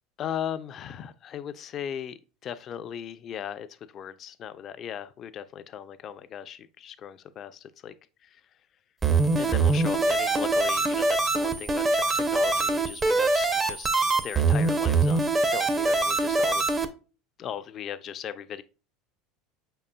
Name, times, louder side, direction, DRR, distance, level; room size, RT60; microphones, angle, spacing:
voice 1, 0.2-7.9 8.2-8.4 9.4-16.6 17.4-18.6, left 9 dB, 45° left, 0.4 m, -38 dB
sound 1, 9.0-16.9, right 3 dB, 20° right, 0.5 m, -24 dB
5.3 x 3.8 x 2.2 m
hypercardioid pair, 90°, 0 cm